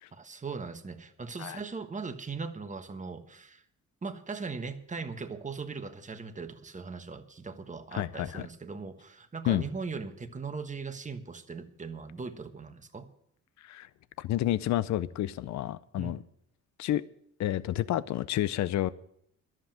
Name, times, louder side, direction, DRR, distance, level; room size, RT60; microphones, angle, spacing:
voice 1, 0.1-3.6 4.0-13.1 16.0-16.2, right 4 dB, 25° right, 1.3 m, -39 dB
voice 2, 7.9-8.4 9.5-9.6 13.6-13.9 14.2-16.2 16.8-17.0 17.4-18.9, left 13 dB, 65° left, 0.6 m, -30 dB
11.5 x 7.7 x 8.9 m
cardioid pair, 90°, 30 cm